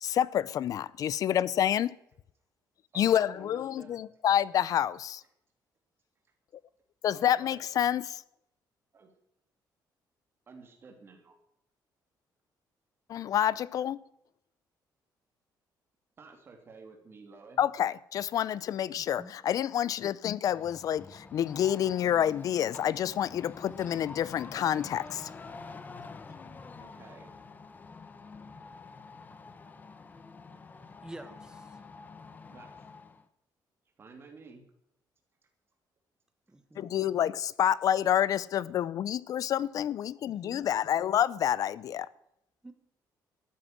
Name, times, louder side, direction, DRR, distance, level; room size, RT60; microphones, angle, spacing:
voice 1, 0.0-1.9 2.9-5.2 7.0-8.2 13.1-14.0 17.6-25.3 36.8-42.1, left 10 dB, 50° left, 0.6 m, -28 dB
voice 2, 2.9-4.1 7.1-7.7 8.9-9.1 10.5-11.4 16.2-17.6 26.8-27.3 30.5-30.7 32.5-32.8 34.0-34.6, right 4 dB, 30° right, 2.8 m, -52 dB
voice 3, 19.0-19.3 31.0-31.8 36.5-37.0 40.2-40.7 42.6-42.7, right 2 dB, 10° right, 1.3 m, -48 dB
sound 1, 20.4-33.2, left 4 dB, 25° left, 1.0 m, -47 dB
13.5 x 9.7 x 7.7 m
cardioid pair, 170°, 8 cm